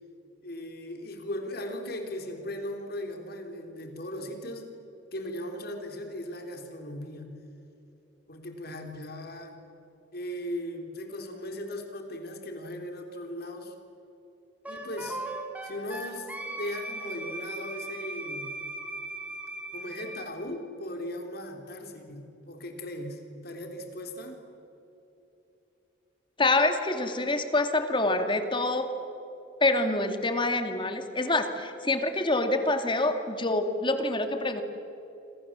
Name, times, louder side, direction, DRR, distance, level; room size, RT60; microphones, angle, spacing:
voice 1, 0.4-4.7 5.1-7.3 8.3-9.6 10.1-13.7 14.7-15.2 15.6-16.3 16.6-18.5 19.7-24.4, left 1 dB, 55° left, 4 dB, 3.8 m, -38 dB
Wind instrument woodwind instrument, 14.6-20.3, right 2 dB, 10° right, 3.6 m, -38 dB
voice 2, 26.4-28.9 29.6-34.6, left 2 dB, 25° left, 7 dB, 2.3 m, -26 dB
28.0 x 27.0 x 7.6 m, 2.9 s
head